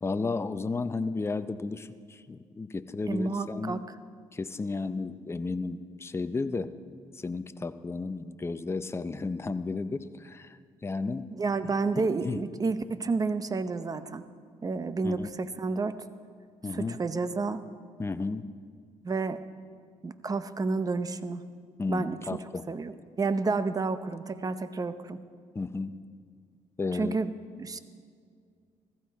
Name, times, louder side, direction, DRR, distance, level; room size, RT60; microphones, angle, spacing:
voice 1, 0.0-3.9 4.3-6.7 7.1-11.3 11.9-12.4 15.0-15.3 16.6-17.0 18.0-18.5 21.8-22.6 25.5-25.9 26.8-27.2, left 3 dB, 20° left, 11 dB, 0.6 m, -33 dB
voice 2, 3.1-3.8 11.3-14.2 14.6-16.0 16.7-17.6 19.0-19.4 20.0-21.4 21.9-22.2 22.7-25.2 26.9-27.3 27.6-27.8, right 4 dB, 30° right, 12 dB, 0.8 m, -30 dB
15.0 x 15.0 x 4.7 m, 2.1 s
cardioid pair, 85°, 13 cm